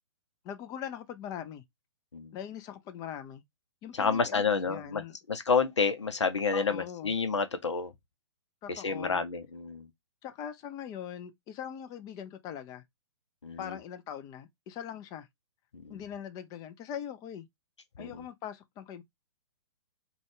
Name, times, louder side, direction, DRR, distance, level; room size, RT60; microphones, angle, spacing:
voice 1, 0.4-1.6 2.3-3.4 3.8-5.2 6.5-7.1 8.6-9.2 10.2-12.8 13.6-15.3 15.9-17.5 18.0-19.0, left 9 dB, 25° left, 0.6 m, -41 dB
voice 2, 3.9-5.0 5.3-7.9 8.7-9.9 13.4-13.8 15.7-16.0 18.0-18.2, left 5 dB, 80° left, 0.7 m, -29 dB
3.7 x 2.4 x 3.5 m
figure-of-eight pair, 120°, 15 cm